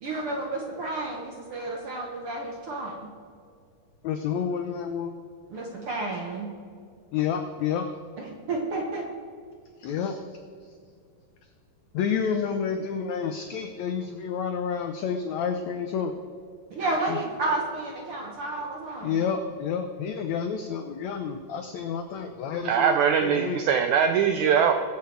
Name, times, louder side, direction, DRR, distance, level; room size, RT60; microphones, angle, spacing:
voice 1, 0.0-3.1 5.5-6.5 8.2-9.1 16.7-19.2, right 2 dB, 65° right, 0 dB, 1.4 m, -31 dB
voice 2, 4.0-5.1 7.1-7.9 9.8-10.4 11.9-16.1 17.1-17.2 19.0-23.6, left 7 dB, 85° left, 6 dB, 1.5 m, -29 dB
voice 3, 22.7-24.7, right 7 dB, 85° right, 6 dB, 1.7 m, -22 dB
21.5 x 7.2 x 4.6 m, 2.2 s
omnidirectional pair, 4.1 m